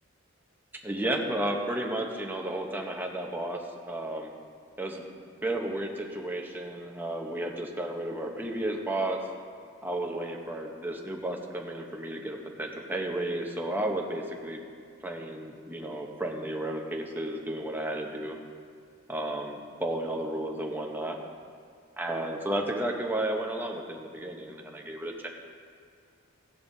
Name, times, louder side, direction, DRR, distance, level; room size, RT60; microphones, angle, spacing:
voice 1, 0.8-4.3 4.8-5.0 5.4-9.2 9.8-14.6 15.0-18.4 19.1-21.2 22.0-25.3, right 1 dB, 10° right, 1 dB, 0.9 m, -33 dB
15.5 x 11.0 x 2.7 m, 2.3 s
head